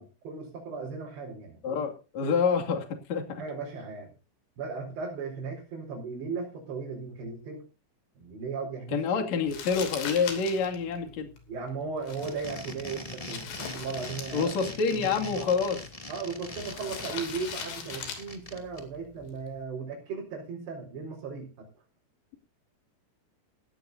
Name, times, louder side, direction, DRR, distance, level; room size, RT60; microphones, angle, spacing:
voice 1, 0.0-1.8 2.2-2.4 3.4-4.1 4.6-7.7 8.1-9.2 11.5-15.5 16.1-21.7, right 5 dB, 75° right, -4 dB, 6.6 m, -37 dB
voice 2, 1.6-3.4 8.9-11.3 14.3-15.8, left 5 dB, 45° left, 3 dB, 3.2 m, -27 dB
Crumpling crinkling, 9.5-19.6, left 6 dB, 80° left, 5.1 m, -42 dB
sound 1, 12.1-18.8, left 1 dB, 15° left, 1.2 m, -42 dB
17.5 x 16.5 x 2.7 m, 0.33 s
omnidirectional pair, 5.0 m